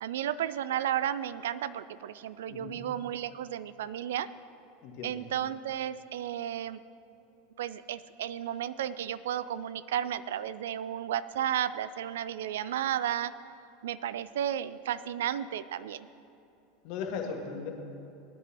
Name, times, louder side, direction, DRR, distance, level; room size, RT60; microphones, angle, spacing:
voice 1, 0.0-4.3 5.0-6.8 7.6-13.3 13.8-16.1, right 10 dB, 70° right, 16 dB, 0.3 m, -33 dB
voice 2, 2.5-2.8 4.8-5.2 16.8-17.7, left 5 dB, 55° left, 2 dB, 1.7 m, -37 dB
19.5 x 9.6 x 2.9 m, 3.0 s
figure-of-eight pair, 85°, 0 cm